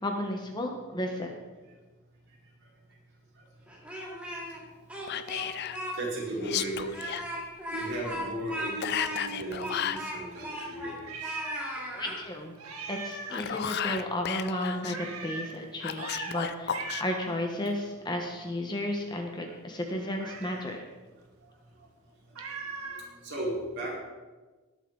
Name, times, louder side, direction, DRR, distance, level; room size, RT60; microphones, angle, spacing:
voice 1, 0.0-1.3 11.3-11.4 11.9-12.5 12.9-20.8, left 1 dB, 20° left, 2 dB, 1.1 m, -33 dB
Speech, 3.7-4.6 4.9-5.9 6.3-6.4 6.9-11.0 11.2-12.2, equal, 5° right, 2.3 m, -37 dB
Whispering, 5.1-5.8 6.4-7.3 8.8-10.1 13.1-15.0 15.8-17.0, left 9 dB, 45° left, 0.4 m, -33 dB
voice 2, 5.9-6.9 7.7-11.4 19.5-19.6 22.9-24.0, right 1 dB, 50° right, -5 dB, 4.4 m, -36 dB
Meow, 10.3-11.8 12.1-12.2 12.6-13.4 14.9-15.5 15.9-16.4 16.7-17.3 20.2-20.7 22.3-23.1, right 4 dB, 80° right, 1.7 m, -40 dB
19.5 x 7.5 x 3.9 m, 1.3 s
head